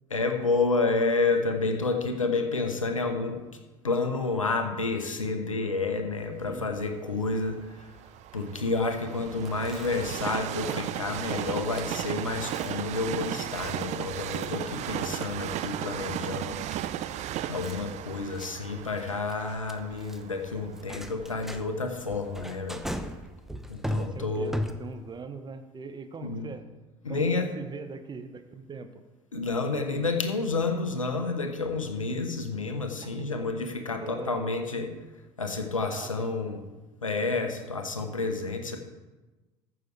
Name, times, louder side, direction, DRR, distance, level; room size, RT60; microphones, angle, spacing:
voice 1, 0.1-3.4 3.8-7.9 8.3-16.6 17.5-22.8 23.7-24.5 26.2-26.5 27.0-27.5 29.3-34.9 35.4-36.6 37.0-38.8, left 3 dB, 90° left, 6 dB, 1.1 m, -29 dB
Train, 6.4-22.4 23.0-23.1, right 12 dB, 45° right, 0.6 m, -36 dB
Chewing mastication, 9.3-25.2, left 1 dB, ahead, 0.8 m, -40 dB
voice 2, 23.9-26.6 27.1-29.0 29.9-30.1 33.0-33.3 33.9-34.6 35.8-36.1, right 5 dB, 25° right, 9 dB, 1.1 m, -41 dB
14.5 x 6.2 x 4.7 m, 1.2 s
figure-of-eight pair, 65°, 17 cm